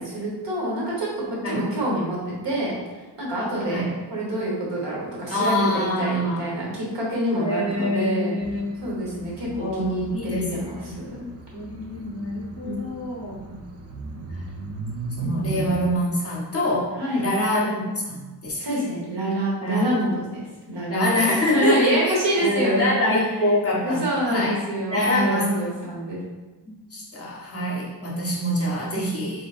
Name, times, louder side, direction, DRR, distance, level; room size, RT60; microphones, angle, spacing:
voice 1, 0.0-2.7 3.2-3.8 4.1-8.4 8.8-11.2 12.6-12.8 13.5-13.6 15.2-15.5 17.0-17.2 18.6-23.0 23.7-26.2, right 1 dB, 80° right, -5 dB, 1.4 m, -26 dB
voice 2, 5.3-6.5 7.3-8.6 8.9-9.0 9.6-10.5 10.8-11.0 11.5-13.4 14.3-14.4 15.2-18.6 19.6-19.8 20.9-24.0 24.3-24.5 24.9-25.5 26.7-29.5, left 1 dB, 35° left, -4 dB, 0.9 m, -25 dB
sound 1, 8.4-16.0, right 3 dB, 40° right, 0.4 m, -35 dB
3.7 x 3.7 x 2.5 m, 1.2 s
wide cardioid pair, 120°, 42 cm